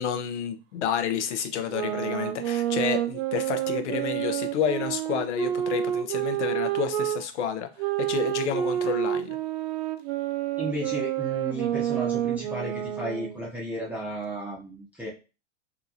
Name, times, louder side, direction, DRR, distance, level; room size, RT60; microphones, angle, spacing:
voice 1, 0.0-9.4, left 7 dB, 85° left, 0.6 m, -30 dB
sound 1, 1.6-7.2 7.8-13.4, right 12 dB, 65° right, 0.5 m, -29 dB
voice 2, 10.6-15.1, right 1 dB, 5° right, 0.6 m, -33 dB
2.8 x 2.5 x 2.4 m
hypercardioid pair, 115°, 34 cm